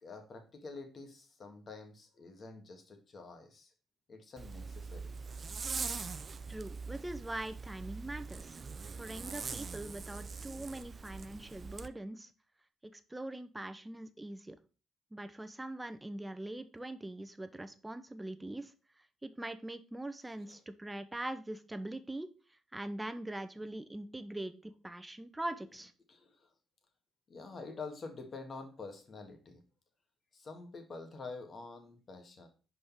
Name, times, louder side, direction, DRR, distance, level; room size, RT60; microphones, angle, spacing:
voice 1, 0.0-3.7 4.1-5.2 20.5-20.6 26.1-26.5 27.3-29.6 30.3-32.5, left 3 dB, 45° left, 5 dB, 1.8 m, -47 dB
Zipper (clothing), 4.4-11.9, right 5 dB, 40° right, 0.5 m, -42 dB
voice 2, 6.5-8.6 9.0-12.3 12.8-14.6 15.1-18.7 19.2-22.3 22.7-25.9, right 1 dB, 10° right, 10 dB, 0.8 m, -42 dB
5.2 x 4.8 x 5.7 m, 0.35 s
cardioid pair, 90°, 0 cm